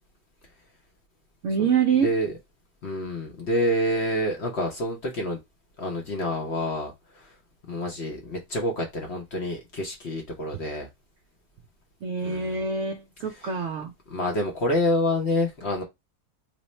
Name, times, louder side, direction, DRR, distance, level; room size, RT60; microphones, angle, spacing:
voice 1, 1.4-2.1 12.0-13.9, right 6 dB, 65° right, 0.7 m, -25 dB
voice 2, 2.0-2.3 2.8-5.4 5.8-7.3 7.7-10.9 12.2-12.6 13.3-13.5 14.1-15.8, left 1 dB, 50° left, 0.9 m, -27 dB
3.1 x 2.1 x 4.1 m
omnidirectional pair, 1.7 m